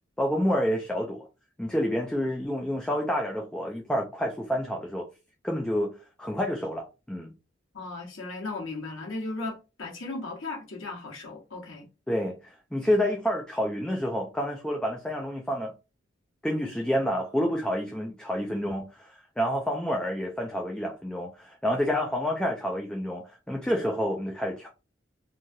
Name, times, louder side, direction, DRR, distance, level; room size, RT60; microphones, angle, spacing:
voice 1, 0.2-1.3 1.6-5.1 5.4-7.3 12.1-15.7 16.4-24.7, equal, 5° left, 0.3 m, -29 dB
voice 2, 7.7-11.9, left 3 dB, 85° left, 1.1 m, -36 dB
3.1 x 2.4 x 2.6 m
head